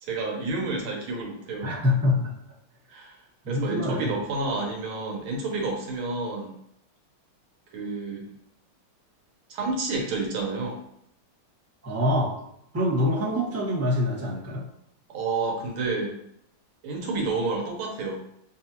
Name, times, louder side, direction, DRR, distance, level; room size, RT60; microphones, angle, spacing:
voice 1, 0.0-1.8 2.9-3.2 3.5-6.5 7.7-8.3 9.5-10.8 15.1-16.2 16.8-18.2, right 3 dB, 85° right, 0 dB, 1.7 m, -30 dB
voice 2, 1.6-2.3 3.4-4.2 11.8-12.4 12.7-14.6, left 1 dB, 10° right, -7 dB, 1.2 m, -25 dB
6.4 x 2.4 x 2.9 m, 0.73 s
omnidirectional pair, 2.3 m